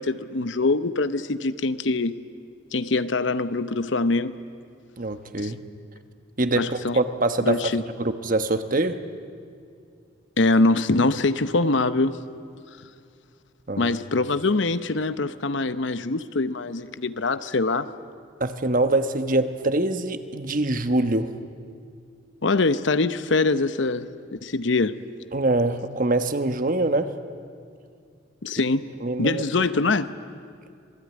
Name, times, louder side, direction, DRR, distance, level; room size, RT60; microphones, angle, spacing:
voice 1, 0.0-2.2 2.7-4.3 5.4-5.5 6.5-7.0 7.4-7.8 10.4-12.2 13.8-17.9 22.4-25.0 28.4-28.8 29.2-30.1, left 3 dB, 70° left, 13 dB, 0.9 m, -23 dB
voice 2, 5.0-5.6 6.4-7.6 8.0-9.0 13.7-14.0 18.4-21.3 25.3-27.1 29.0-29.7, right 2 dB, 45° right, 9 dB, 1.2 m, -24 dB
26.5 x 20.0 x 9.5 m, 2.3 s
head